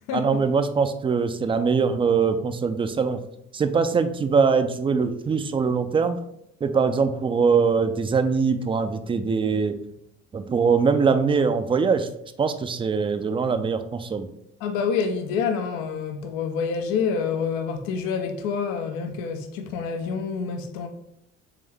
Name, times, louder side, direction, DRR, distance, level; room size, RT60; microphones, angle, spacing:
voice 1, 0.1-3.2 3.5-6.2 6.6-9.8 10.3-12.1 12.4-14.3, right 5 dB, 15° right, 0.3 m, -22 dB
voice 2, 14.6-20.9, left 6 dB, 75° left, 0.6 m, -27 dB
3.7 x 3.3 x 3.3 m
hypercardioid pair, 60°, 36 cm